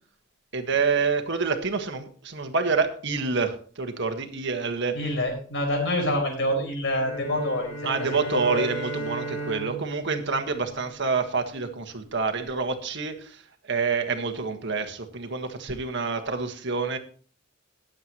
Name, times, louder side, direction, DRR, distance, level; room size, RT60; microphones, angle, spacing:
voice 1, 0.5-5.0 7.8-17.0, right 4 dB, 60° right, 6 dB, 1.5 m, -27 dB
voice 2, 4.9-7.7 8.4-8.6, left 1 dB, 65° left, 2 dB, 4.9 m, -26 dB
sound 1, 7.0-11.4, right 2 dB, 30° left, 5.1 m, -36 dB
19.5 x 7.8 x 3.0 m, 0.42 s
head